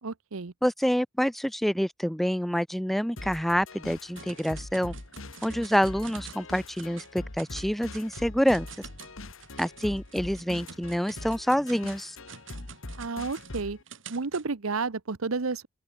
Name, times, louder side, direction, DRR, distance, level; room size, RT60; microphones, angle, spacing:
voice 1, 0.0-0.5 13.0-13.8 14.1-15.7, right 4 dB, 85° right, 1.0 m, -31 dB
voice 2, 0.6-4.9 5.4-8.7 9.6-12.2, equal, ahead, 0.4 m, -27 dB
sound 1, 3.2-13.8, left 2 dB, 75° left, 2.1 m, -42 dB
sound 2, 4.2-6.5 6.8-7.1 7.4-14.4, right 6 dB, 65° right, 4.9 m, -48 dB
open air
head